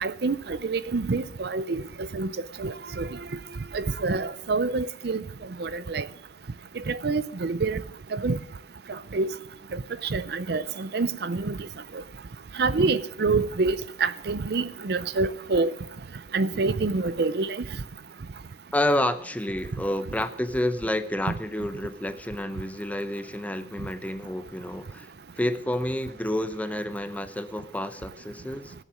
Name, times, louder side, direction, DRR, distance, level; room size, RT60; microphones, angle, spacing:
voice 1, 0.0-2.3 2.6-3.2 3.7-5.2 5.6-6.1 6.8-7.8 8.1-8.4 8.9-9.3 9.7-11.6 12.6-15.7 16.3-17.6, right 3 dB, 60° right, 0.5 m, -27 dB
voice 2, 18.7-25.1 25.4-28.7, left 1 dB, 10° left, 0.7 m, -29 dB
17.0 x 7.2 x 6.3 m
head